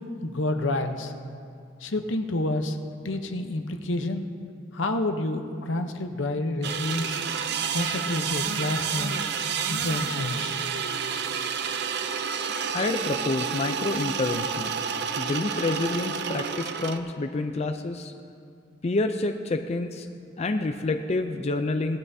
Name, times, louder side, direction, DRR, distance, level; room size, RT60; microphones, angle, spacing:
voice 1, 0.2-1.1 1.8-2.8 3.0-4.2 4.7-7.2 7.7-9.3 9.7-10.5, left 2 dB, 80° left, 6 dB, 0.8 m, -29 dB
sound 1, 6.6-17.0, right 6 dB, 60° right, 0.6 m, -30 dB
voice 2, 12.7-18.1 18.8-20.1 20.4-22.0, left 2 dB, 35° left, 6 dB, 0.4 m, -28 dB
18.0 x 12.0 x 2.7 m, 2.4 s
head